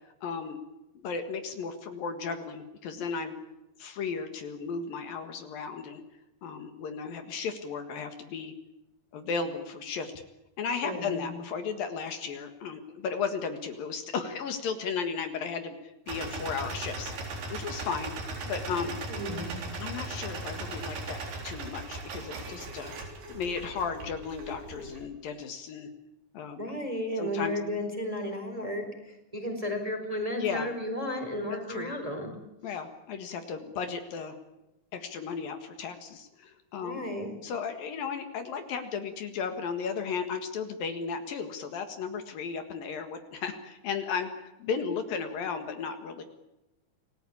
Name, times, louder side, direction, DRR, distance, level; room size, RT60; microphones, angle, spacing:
voice 1, 0.2-0.6 0.9-3.3 3.8-6.0 6.4-8.5 9.1-10.1 10.6-18.1 18.5-19.0 19.8-21.2 21.4-22.9 23.3-25.9 26.3-26.6 27.2-27.6 30.3-30.7 31.5-31.9 32.6-34.4 34.9-37.1 37.4-46.2, left 5 dB, 65° left, 7 dB, 3.4 m, -35 dB
voice 2, 10.8-11.2 19.1-19.6 26.6-32.3 36.8-37.4, left 1 dB, 10° right, 4 dB, 4.2 m, -33 dB
sound 1, 16.1-25.0, right 3 dB, 85° right, 5.8 m, -38 dB
28.5 x 19.5 x 8.7 m, 0.94 s
omnidirectional pair, 4.4 m